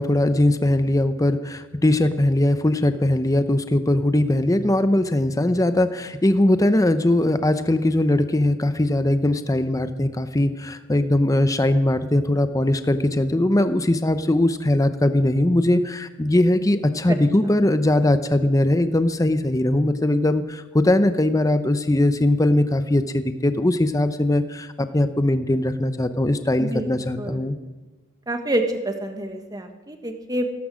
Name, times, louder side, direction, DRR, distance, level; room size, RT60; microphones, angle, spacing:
voice 1, 0.0-27.6, left 1 dB, 15° left, 10 dB, 0.7 m, -20 dB
voice 2, 26.6-27.5 28.3-30.5, right 1 dB, 20° right, 5 dB, 1.5 m, -27 dB
15.5 x 13.5 x 6.3 m, 1.2 s
head